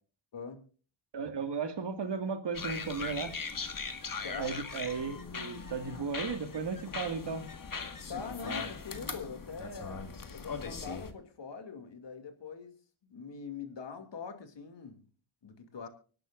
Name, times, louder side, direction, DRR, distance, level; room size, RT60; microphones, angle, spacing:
voice 1, 0.3-0.6 4.2-4.6 8.1-12.7 13.0-15.0 15.4-15.9, left 5 dB, 65° left, 6 dB, 2.7 m, -43 dB
voice 2, 1.1-3.3 4.4-7.5, right 5 dB, 60° right, 7 dB, 2.1 m, -35 dB
sound 1, 2.5-11.1, left 5 dB, 45° left, 1.8 m, -40 dB
24.5 x 11.5 x 2.6 m, 0.38 s
cardioid pair, 65°, 47 cm